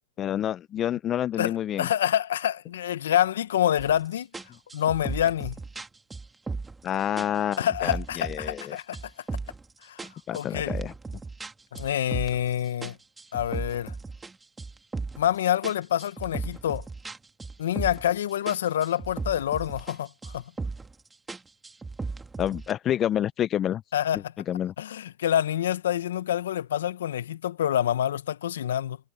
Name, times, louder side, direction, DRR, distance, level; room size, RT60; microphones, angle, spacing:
voice 1, 0.2-1.9 6.8-8.8 10.3-10.9 22.4-23.8 24.5-24.7, left 11 dB, 30° left, 0.7 m, -28 dB
voice 2, 1.4-4.3 4.7-5.5 7.6-9.0 9.8-10.0 10.3-10.7 11.7-13.0 13.3-13.9 15.2-16.8 17.6-20.4 23.9-24.3 24.8-29.0, left 10 dB, 75° left, 1.2 m, -27 dB
sound 1, 3.8-4.0 4.3-6.9 7.2-8.7 8.9-9.7 10.0-12.5 12.8-15.3 15.6-18.2 18.5-20.0 20.2-20.9 21.3-22.7, right 3 dB, 10° right, 1.7 m, -36 dB
hypercardioid pair, 120°, 0 cm